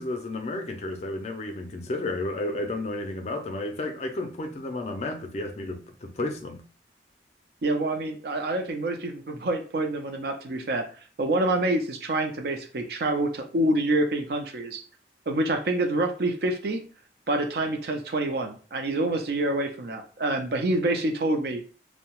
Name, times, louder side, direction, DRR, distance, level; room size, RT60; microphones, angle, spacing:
voice 1, 0.0-6.6, left 2 dB, 40° left, 5 dB, 0.4 m, -32 dB
voice 2, 7.6-10.9 11.2-14.8 15.3-16.9 17.3-21.6, right 2 dB, 60° right, 5 dB, 0.4 m, -27 dB
2.7 x 2.1 x 2.9 m, 0.39 s
head